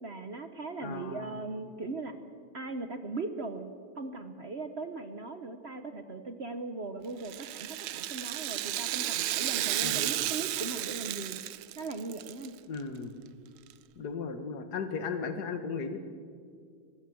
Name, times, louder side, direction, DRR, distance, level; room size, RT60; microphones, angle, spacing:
voice 1, 0.0-2.1 2.5-11.4 11.8-12.6, right 3 dB, 45° right, 9 dB, 0.9 m, -39 dB
voice 2, 0.8-1.4 9.8-10.3 12.7-13.1 14.0-16.0, left 5 dB, 55° left, 8 dB, 2.0 m, -36 dB
Rattle (instrument), 7.2-12.5 12.8-12.9 13.7-13.8, right 14 dB, 90° right, 1.5 m, -33 dB
22.0 x 15.5 x 7.7 m, 2.1 s
omnidirectional pair, 2.2 m